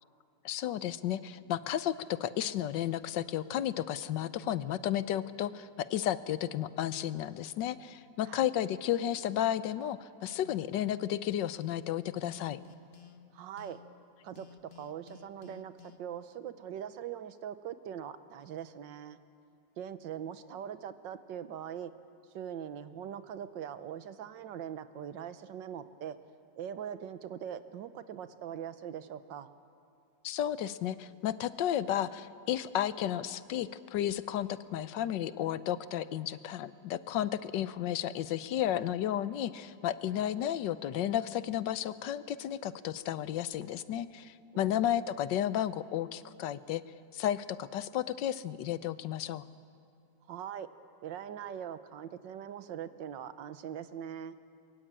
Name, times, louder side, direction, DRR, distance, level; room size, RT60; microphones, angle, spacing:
voice 1, 0.4-12.6 30.2-46.8 47.1-49.4, left 11 dB, 80° left, 15 dB, 1.4 m, -33 dB
sound 1, 10.3-14.0 14.3-16.0, left 7 dB, 40° left, 1.2 m, -54 dB
voice 2, 13.3-13.8 14.2-14.5 14.8-15.7 16.0-19.2 19.8-21.9 22.3-26.2 26.6-29.5 44.5-44.8 50.3-50.7 51.0-54.3, right 9 dB, 90° right, 12 dB, 1.6 m, -41 dB
22.5 x 22.5 x 8.8 m, 2.4 s
omnidirectional pair, 1.9 m